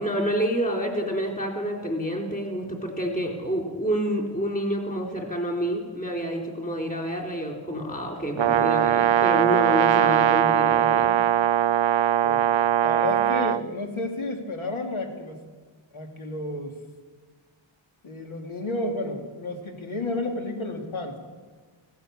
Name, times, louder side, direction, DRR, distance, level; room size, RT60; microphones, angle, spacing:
voice 1, 0.0-11.1, equal, 15° left, 2 dB, 3.5 m, -28 dB
Brass instrument, 8.4-13.6, right 11 dB, 65° right, 0.6 m, -21 dB
voice 2, 12.8-15.4 15.9-16.8 18.0-21.2, left 2 dB, 75° left, 3 dB, 2.6 m, -31 dB
18.5 x 16.5 x 8.6 m, 1.4 s
wide cardioid pair, 170°, 49 cm